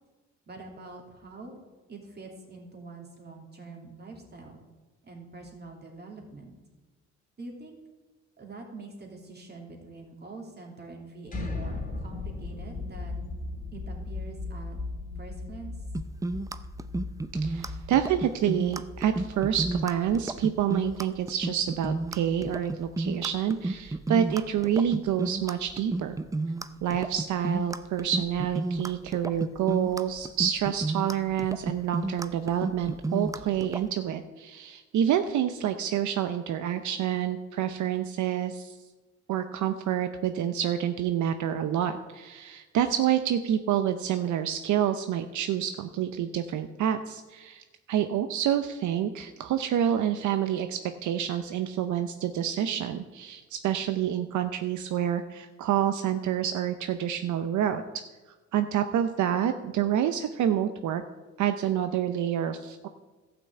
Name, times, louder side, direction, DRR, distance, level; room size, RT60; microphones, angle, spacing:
voice 1, 0.5-1.6 1.9-4.6 5.0-6.5 7.4-7.8 8.4-13.1 13.7-14.8 15.2-15.7, right 3 dB, 35° right, 1 dB, 3.0 m, -45 dB
sound 1, 11.3-23.1, left 3 dB, 30° left, 2.9 m, -38 dB
sound 2, 15.9-33.8, right 2 dB, 10° right, 0.5 m, -32 dB
voice 2, 17.4-26.2 26.8-38.8 39.3-57.8 58.5-61.0 61.4-62.9, right 10 dB, 75° right, 9 dB, 0.7 m, -28 dB
12.5 x 6.1 x 7.9 m, 1.3 s
cardioid pair, 90°, 30 cm